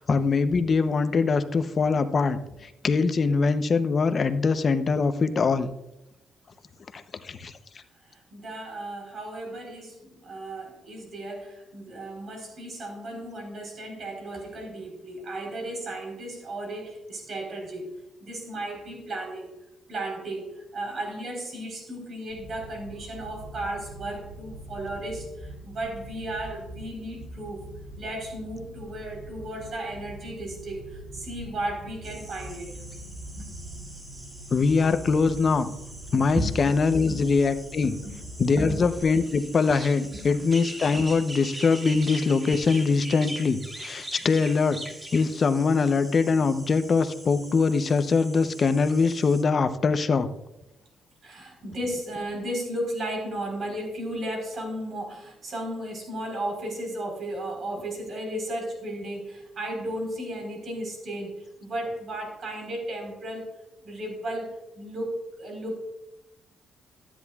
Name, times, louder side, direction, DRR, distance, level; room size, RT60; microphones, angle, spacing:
voice 1, 0.0-5.7 7.2-7.5 34.5-35.7 36.1-37.9 38.4-44.8 45.1-50.3, left 4 dB, 45° left, 10 dB, 0.7 m, -23 dB
voice 2, 8.1-17.9 18.2-19.5 19.9-27.6 28.0-32.8 33.4-33.5 36.3-36.7 37.1-37.2 37.8-38.2 38.6-38.8 40.1-40.2 51.2-61.3 61.6-63.5 63.8-65.8, right 1 dB, 55° right, 2 dB, 4.1 m, -34 dB
sound 1, 22.3-39.0, right 1 dB, 80° right, 1.9 m, -43 dB
sound 2, 32.0-49.4, right 1 dB, 25° right, 2.0 m, -42 dB
13.0 x 10.0 x 2.4 m, 0.91 s
cardioid pair, 90°, 0 cm